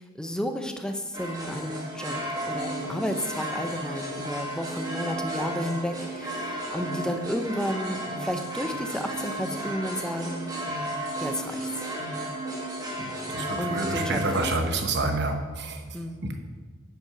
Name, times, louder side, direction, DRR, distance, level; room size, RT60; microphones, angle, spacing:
voice 1, 0.0-2.2 2.5-10.5 11.2-11.9 13.6-14.5 15.9-16.3, equal, 5° left, 5 dB, 0.6 m, -32 dB
sound 1, 1.1-14.5, right 1 dB, 20° right, 1.5 m, -33 dB
voice 2, 13.0-15.8 16.2-16.4, right 2 dB, 60° right, 5 dB, 1.0 m, -28 dB
8.7 x 5.8 x 5.7 m, 1.5 s
head